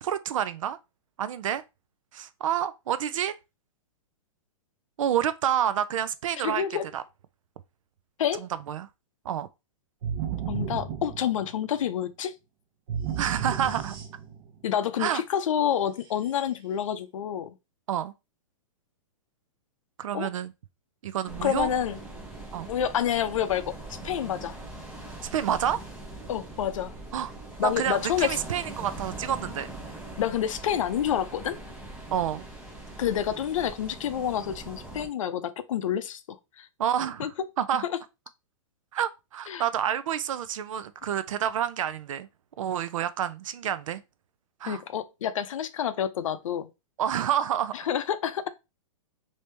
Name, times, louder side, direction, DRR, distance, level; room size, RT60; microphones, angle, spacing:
voice 1, 0.0-0.8 1.2-1.6 2.1-3.3 5.0-6.6 6.9-7.0 8.4-8.9 9.2-9.5 13.2-14.0 15.0-15.2 17.9-18.1 20.0-20.5 21.0-21.7 22.5-22.7 25.3-25.8 27.1-27.3 27.6-29.7 32.1-32.4 36.8-37.9 38.9-42.3 42.6-44.0 44.6-44.8 47.0-47.7, right 10 dB, 70° right, 0.5 m, -28 dB
voice 2, 6.4-6.8 8.2-8.5 10.5-12.3 14.6-17.5 20.1-20.3 21.4-22.0 22.7-24.5 26.3-26.9 27.6-28.4 30.2-31.6 33.0-36.7 37.2-37.3 39.5-39.6 44.7-46.7 47.7-48.5, left 9 dB, 70° left, 0.5 m, -28 dB
sound 1, 10.0-11.8 12.9-14.5, right 8 dB, 45° right, 0.9 m, -33 dB
sound 2, 21.2-35.1, right 2 dB, 5° right, 0.6 m, -41 dB
3.1 x 2.8 x 3.3 m
hypercardioid pair, 170°, 17 cm